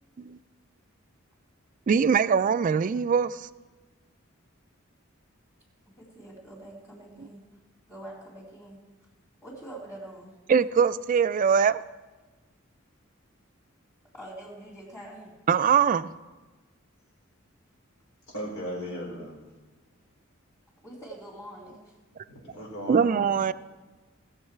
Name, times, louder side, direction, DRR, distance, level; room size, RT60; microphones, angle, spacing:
voice 1, 1.9-3.4 10.5-11.8 15.5-16.1 22.9-23.5, right 6 dB, 40° right, 15 dB, 0.3 m, -22 dB
voice 2, 6.0-7.4 7.9-8.8 9.4-10.3 14.1-15.4 20.8-21.9, right 1 dB, 15° left, -8 dB, 2.6 m, -44 dB
voice 3, 18.3-19.3 22.3-23.3, equal, 85° left, -3 dB, 4.3 m, -36 dB
18.5 x 7.3 x 4.5 m, 1.2 s
head